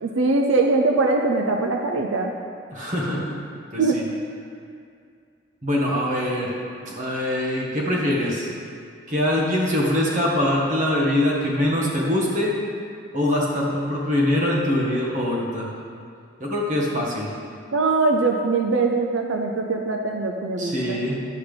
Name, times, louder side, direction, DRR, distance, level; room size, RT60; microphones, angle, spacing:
voice 1, 0.0-2.3 3.8-4.0 17.7-21.0, right 3 dB, 85° right, 2 dB, 0.6 m, -22 dB
voice 2, 2.7-3.4 3.7-4.0 5.6-6.6 6.9-8.5 9.1-12.5 13.1-15.7 16.4-17.3 20.6-21.2, left 1 dB, 40° right, -3 dB, 1.5 m, -23 dB
11.0 x 8.0 x 3.4 m, 2.3 s
head